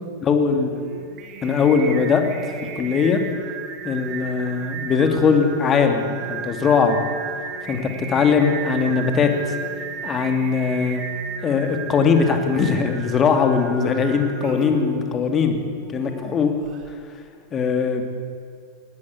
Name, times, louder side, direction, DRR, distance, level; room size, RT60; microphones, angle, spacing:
voice 1, 0.2-0.7 1.4-2.2 2.8-3.2 3.8-6.0 6.3-7.0 7.7-9.6 10.0-11.0 11.4-15.5 15.9-16.5 17.5-18.0, left 5 dB, 25° left, 5 dB, 2.8 m, -20 dB
Singing, 0.7-16.9, right 5 dB, 35° right, 3.3 m, -35 dB
21.0 x 19.0 x 8.5 m, 2.3 s
figure-of-eight pair, 90°, 0 cm